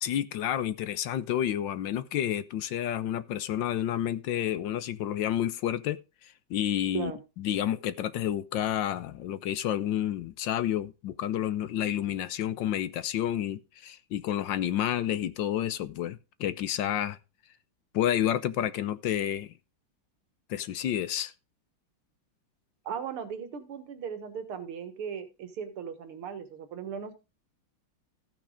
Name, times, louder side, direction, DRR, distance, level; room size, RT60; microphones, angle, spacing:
voice 1, 0.0-7.1 7.4-17.2 17.9-19.5 20.5-21.3, left 11 dB, 70° left, 1.3 m, -30 dB
voice 2, 22.9-27.1, right 7 dB, 90° right, 2.4 m, -37 dB
14.0 x 6.1 x 5.0 m
omnidirectional pair, 2.3 m